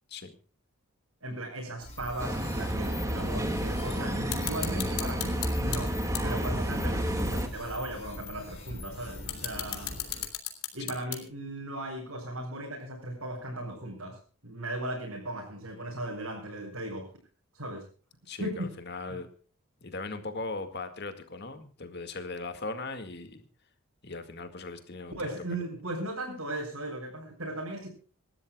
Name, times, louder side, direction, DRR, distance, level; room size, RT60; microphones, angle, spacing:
voice 1, 1.2-5.9 6.2-10.0 10.7-14.2 14.4-17.1 17.5-17.8 18.4-18.7 25.2-27.9, right 1 dB, 70° right, -4 dB, 6.4 m, -37 dB
sound 1, 1.8-10.3, left 2 dB, 30° left, 5.0 m, -43 dB
sound 2, 2.2-7.5, equal, 15° right, 1.9 m, -30 dB
sound 3, 4.3-5.8 6.1-6.2 6.9-7.0 8.3-8.4 9.0-11.5, left 12 dB, 80° left, 2.9 m, -34 dB
voice 2, 18.3-19.3 19.8-23.5 24.0-25.2, left 3 dB, 50° left, 8 dB, 2.0 m, -39 dB
27.0 x 13.0 x 2.3 m, 0.39 s
head